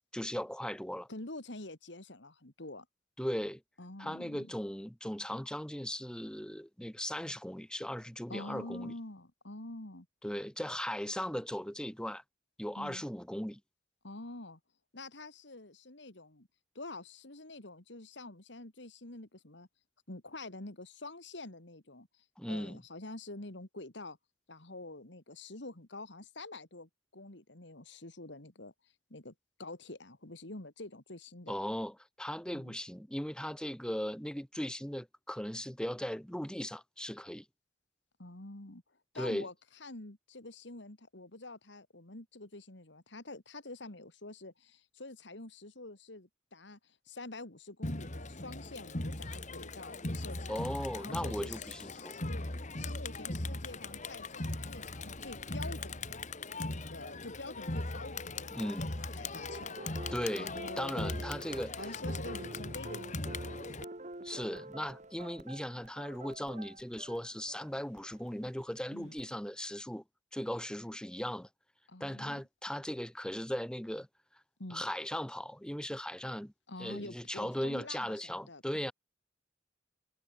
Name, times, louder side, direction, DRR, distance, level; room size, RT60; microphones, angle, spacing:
voice 1, 0.1-1.1 3.2-3.6 4.0-8.9 10.2-12.2 12.6-13.6 22.4-22.8 31.5-37.4 39.1-39.5 50.5-52.2 58.5-58.9 60.1-61.8 64.2-70.0 70.3-71.5 72.0-74.1 74.7-76.5 76.8-78.9, equal, 5° left, 1.3 m, -38 dB
voice 2, 1.1-2.9 3.8-4.5 8.3-10.1 12.8-13.0 14.0-14.6 14.9-16.5 16.7-19.7 20.1-22.1 22.5-24.2 24.5-28.7 29.1-29.3 29.6-31.6 32.5-32.8 38.2-38.8 39.1-39.5 39.8-50.6 50.9-52.4 52.8-56.2 56.7-58.7 59.0-59.8 60.4-60.9 61.8-63.5 68.9-69.1 71.9-72.4 74.6-74.8 76.7-78.9, left 2 dB, 65° left, 2.6 m, -47 dB
Crowd, 47.8-63.8, left 2 dB, 40° left, 2.4 m, -39 dB
sound 1, 59.5-69.3, right 2 dB, 40° right, 2.8 m, -47 dB
head